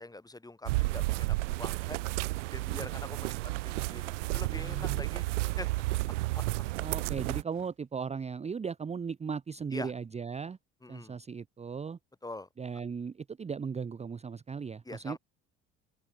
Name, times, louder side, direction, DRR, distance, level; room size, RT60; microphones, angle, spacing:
voice 1, 0.0-2.0 2.5-5.3 5.6-5.7 6.1-6.4 9.7-9.9 10.8-11.2 12.2-12.5 14.8-15.2, left 2 dB, 10° left, 1.5 m, -44 dB
sound 1, 0.7-7.4, right 21 dB, 90° right, 0.5 m, -32 dB
voice 2, 4.6-5.0 6.8-10.6 10.9-12.0 12.6-15.2, right 6 dB, 20° right, 0.7 m, -37 dB
sound 2, 7.4-7.8, right 12 dB, 55° right, 7.5 m, -59 dB
open air
hypercardioid pair, 70°, 35 cm